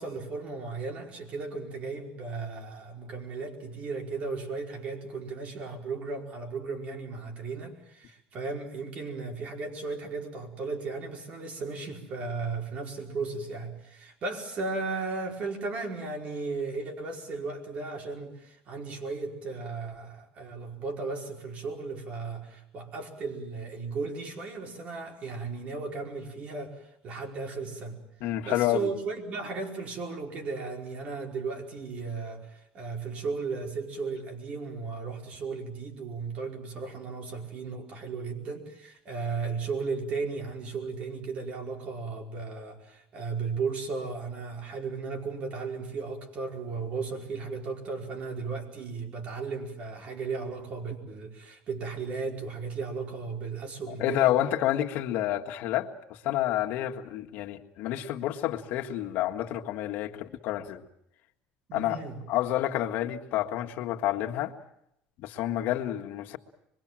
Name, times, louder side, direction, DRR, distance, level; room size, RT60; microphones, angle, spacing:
voice 1, 0.0-28.0 28.4-54.3 61.7-62.2, right 4 dB, 45° right, 3 dB, 4.9 m, -35 dB
voice 2, 28.2-28.9 54.0-60.8 61.7-62.0 62.3-64.5 65.2-66.4, left 13 dB, 70° left, 3 dB, 1.7 m, -29 dB
25.5 x 22.5 x 7.6 m, 0.76 s
cardioid pair, 140°, 3 cm